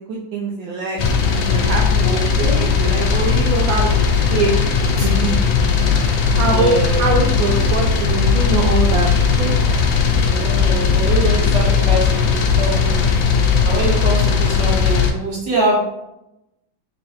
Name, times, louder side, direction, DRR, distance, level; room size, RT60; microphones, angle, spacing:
voice 1, 0.0-4.0 4.3-4.6 5.0-5.4 6.4-9.7 13.9-14.0, right 3 dB, 85° right, -2 dB, 1.4 m, -23 dB
sound 1, 1.0-15.1, left 6 dB, 85° left, 1.4 m, -17 dB
voice 2, 2.0-2.6 6.4-7.1 10.2-13.0 13.6-15.8, right 3 dB, 65° right, -5 dB, 2.1 m, -24 dB
sound 2, 7.4-12.8, left 1 dB, 65° left, 0.9 m, -28 dB
3.8 x 3.7 x 3.0 m, 0.86 s
omnidirectional pair, 2.1 m